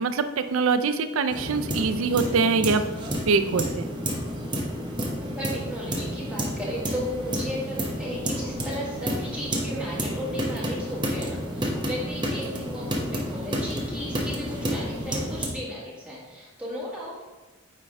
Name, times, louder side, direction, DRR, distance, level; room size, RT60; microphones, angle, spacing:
voice 1, 0.0-2.9 3.3-3.9, right 4 dB, 70° right, 9 dB, 0.4 m, -24 dB
sound 1, 1.3-15.5, equal, 20° right, 0.9 m, -30 dB
voice 2, 5.2-17.2, equal, 5° right, -8 dB, 1.7 m, -35 dB
9.3 x 3.3 x 3.6 m, 1.3 s
head